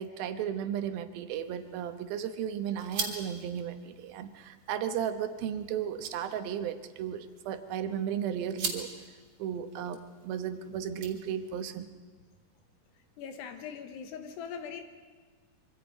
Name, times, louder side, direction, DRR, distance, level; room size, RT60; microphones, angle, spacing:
voice 1, 0.0-8.9 9.4-11.9, right 9 dB, 70° right, 8 dB, 2.7 m, -35 dB
sound 1, 1.3-11.7, right 4 dB, 40° right, 3.4 m, -43 dB
voice 2, 13.2-14.8, left 7 dB, 85° left, 6 dB, 3.4 m, -41 dB
25.5 x 25.0 x 5.2 m, 1.4 s
omnidirectional pair, 4.8 m